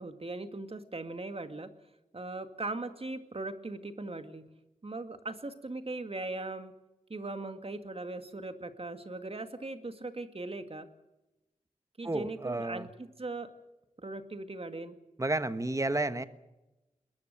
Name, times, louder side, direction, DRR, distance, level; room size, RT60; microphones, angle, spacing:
voice 1, 0.0-1.7 2.1-4.5 4.8-6.7 7.1-10.9 12.0-13.5 14.0-15.0, right 2 dB, 45° right, 9 dB, 2.1 m, -39 dB
voice 2, 12.0-12.9 15.2-16.2, right 2 dB, 20° right, 12 dB, 1.3 m, -31 dB
22.0 x 21.0 x 6.8 m, 0.99 s
wide cardioid pair, 85°, 14 cm